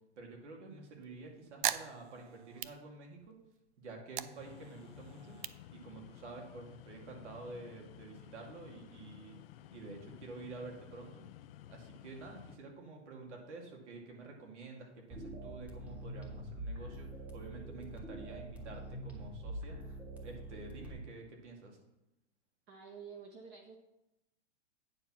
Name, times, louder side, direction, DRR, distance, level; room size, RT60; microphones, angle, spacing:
voice 1, 0.2-3.4 3.8-5.4 5.7-9.4 9.7-11.3 11.7-21.8, right 3 dB, 75° right, 1 dB, 2.5 m, -49 dB
sound 1, 0.9-3.5 3.8-6.5, right 12 dB, 45° right, 0.4 m, -41 dB
sound 2, 4.4-12.6, left 13 dB, 55° left, 0.5 m, -54 dB
sound 3, 15.1-20.9, right 1 dB, 5° right, 1.1 m, -45 dB
voice 2, 22.7-23.8, right 6 dB, 30° right, 2 dB, 0.9 m, -50 dB
9.3 x 4.6 x 5.9 m, 0.89 s
hypercardioid pair, 140°, 35 cm